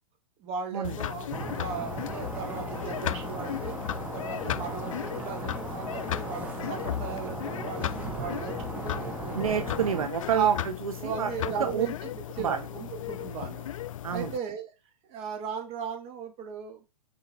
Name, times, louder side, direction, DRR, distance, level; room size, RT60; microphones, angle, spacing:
voice 1, 0.4-9.4 10.3-10.5 11.0-11.9 12.4-13.7 14.1-14.7 15.1-16.8, right 7 dB, 35° right, 1.8 m, -36 dB
sound 1, 0.8-14.4, left 11 dB, 65° left, 0.4 m, -36 dB
sound 2, 1.3-10.1, right 2 dB, 10° right, 1.3 m, -37 dB
voice 2, 9.3-11.9 12.4-12.6 14.0-14.3, right 8 dB, 75° right, 0.7 m, -29 dB
6.0 x 4.6 x 3.4 m
hypercardioid pair, 115°, 18 cm